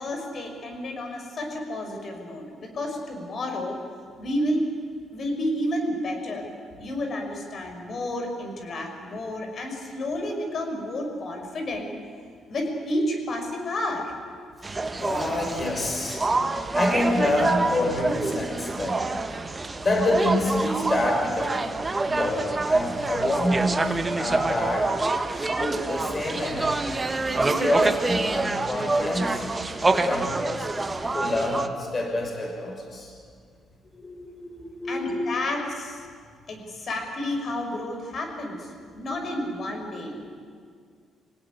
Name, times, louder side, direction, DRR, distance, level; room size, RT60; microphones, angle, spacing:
voice 1, 0.0-3.8 4.2-4.7 5.1-6.4 6.8-11.9 12.5-14.1 34.9-36.0 36.5-38.7 38.9-40.4, left 1 dB, 50° left, 3 dB, 5.7 m, -30 dB
sound 1, 14.6-31.7, right 3 dB, 25° right, 1.6 m, -26 dB
voice 2, 15.0-16.2 16.7-19.0 19.8-21.7 22.0-23.9 24.1-24.9 25.6-27.0 27.4-29.4 29.9-30.7 31.1-33.1 33.8-35.2, left 1 dB, 35° left, 1 dB, 6.0 m, -27 dB
26.0 x 17.5 x 9.7 m, 2.1 s
cardioid pair, 90°, 0 cm